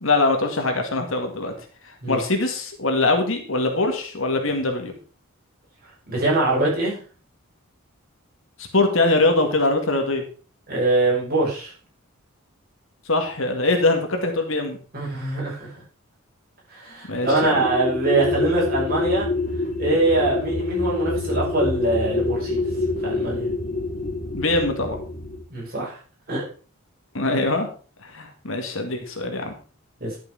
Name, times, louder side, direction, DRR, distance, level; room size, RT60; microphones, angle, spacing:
voice 1, 0.0-1.5 1.8-4.9 8.6-10.2 13.1-14.8 17.1-17.7 24.3-25.0 27.1-27.7 28.0-29.5, left 2 dB, 65° left, 4 dB, 2.2 m, -22 dB
voice 2, 6.1-7.0 10.7-11.7 14.9-15.7 16.7-19.3 19.8-22.6 23.0-23.5 25.5-26.0 26.3-26.5 30.0-30.2, right 2 dB, 45° right, -5 dB, 6.5 m, -23 dB
sound 1, 17.1-25.4, left 2 dB, 35° left, 2.2 m, -26 dB
11.5 x 6.8 x 4.9 m, 0.39 s
head